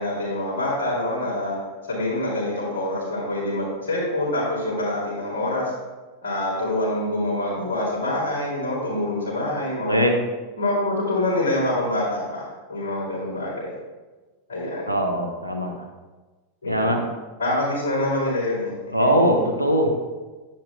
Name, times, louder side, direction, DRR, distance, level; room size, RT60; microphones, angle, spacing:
voice 1, 0.0-1.6 1.9-5.7 6.2-10.0 10.6-13.7 14.5-14.9 16.6-17.0 17.4-18.7, left 1 dB, 65° left, -10 dB, 2.7 m, -25 dB
voice 2, 9.9-10.2 14.9-15.7 16.6-17.0 18.9-19.9, equal, 85° left, 3 dB, 0.8 m, -21 dB
10.5 x 8.2 x 2.3 m, 1.3 s
figure-of-eight pair, 90°, 0 cm